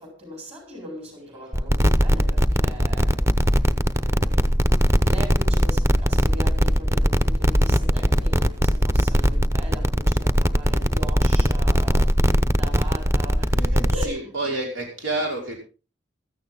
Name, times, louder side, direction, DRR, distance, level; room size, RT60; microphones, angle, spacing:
voice 1, 0.0-3.2 4.0-14.3, equal, 35° right, 7.5 m, -39 dB
sound 1, 1.5-14.0, equal, 15° right, 0.8 m, -20 dB
voice 2, 14.0-15.6, right 2 dB, 90° right, 5.3 m, -28 dB
16.0 x 14.0 x 3.9 m
head